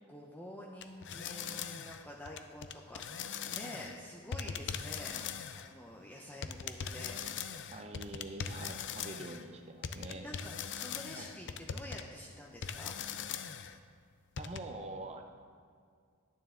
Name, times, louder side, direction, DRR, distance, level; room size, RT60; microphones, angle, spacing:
voice 1, 0.1-5.3 5.6-7.2 10.2-12.9, left 1 dB, 10° left, -3 dB, 0.7 m, -48 dB
sound 1, 0.8-4.0 4.3-5.7 6.4-9.5 9.8-12.0 12.6-13.8 14.4-14.6, left 7 dB, 60° left, 0.5 m, -40 dB
voice 2, 7.6-10.3 11.2-11.3 14.4-15.2, right 2 dB, 30° right, 5 dB, 0.7 m, -45 dB
11.0 x 9.3 x 3.7 m, 2.2 s
head